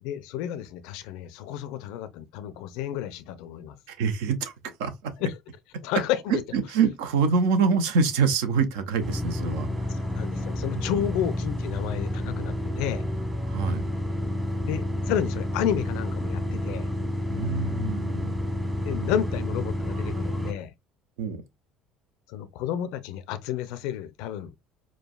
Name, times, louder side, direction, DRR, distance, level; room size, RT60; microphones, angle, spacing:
voice 1, 0.0-3.8 5.2-5.4 5.8-6.4 10.0-13.0 14.6-16.9 18.8-20.7 22.3-24.5, left 10 dB, 65° left, 0.4 m, -31 dB
voice 2, 3.9-4.5 4.8-5.1 6.3-9.7 13.5-13.8 17.3-18.3 21.2-21.4, right 5 dB, 70° right, 0.6 m, -25 dB
sound 1, 9.0-20.5, left 1 dB, 15° right, 1.1 m, -30 dB
4.6 x 2.2 x 2.3 m
hypercardioid pair, 60°, 0 cm